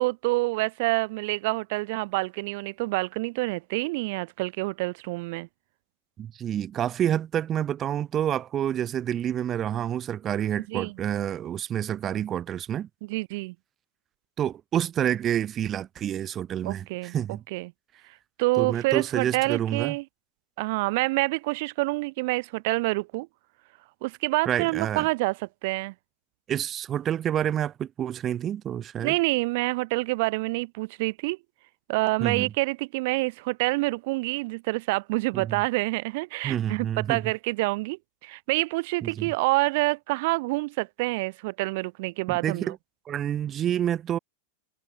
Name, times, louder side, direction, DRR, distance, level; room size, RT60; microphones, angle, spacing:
voice 1, 0.0-5.5 10.7-11.0 13.0-13.5 16.6-17.2 17.5-17.7 18.4-20.0 20.6-23.3 24.0-25.9 29.0-31.4 31.9-42.7, right 24 dB, 50° right, 3.0 m, -27 dB
voice 2, 6.2-12.9 14.4-17.4 18.6-20.0 24.5-25.1 26.5-29.1 32.2-32.5 35.3-35.6 36.4-37.2 39.0-39.3 42.3-42.8 43.1-44.2, right 10 dB, 30° right, 1.0 m, -28 dB
figure-of-eight pair, 90°, 0 cm